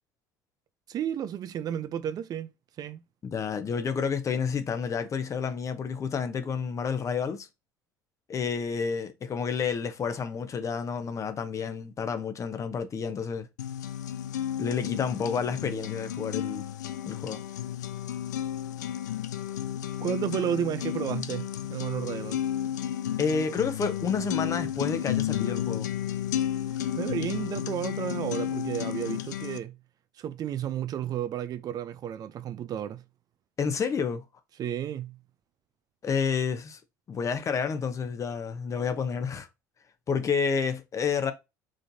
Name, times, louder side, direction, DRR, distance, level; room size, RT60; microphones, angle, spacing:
voice 1, 0.9-2.5 2.8-3.0 20.0-22.4 27.0-29.7 30.2-33.0 34.6-35.2, right 9 dB, 40° right, 0.6 m, -32 dB
voice 2, 3.2-7.5 8.3-13.5 14.6-16.6 17.1-17.4 23.2-25.9 33.6-34.2 36.0-36.8 37.1-39.5 40.1-41.3, left 6 dB, 35° left, 1.0 m, -30 dB
sound 1, 13.6-29.6, left 11 dB, 75° left, 0.4 m, -32 dB
5.0 x 3.8 x 2.7 m
figure-of-eight pair, 65°, 9 cm